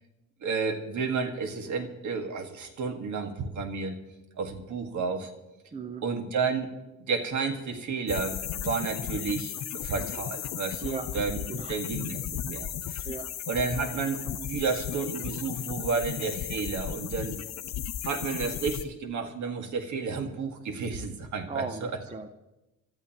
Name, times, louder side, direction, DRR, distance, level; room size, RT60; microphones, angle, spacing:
voice 1, 0.4-4.0 4.4-5.3 6.0-6.8 7.1-11.4 11.7-13.0 13.5-17.4 18.0-21.9, right 5 dB, 70° right, 5 dB, 1.9 m, -31 dB
voice 2, 5.7-6.0 10.8-11.1 11.5-11.8 13.0-13.3 21.5-22.3, right 4 dB, 20° right, 8 dB, 0.8 m, -37 dB
sound 1, 8.1-18.8, left 10 dB, 60° left, 0.7 m, -35 dB
27.0 x 13.5 x 3.0 m, 0.99 s
cardioid pair, 120°, 31 cm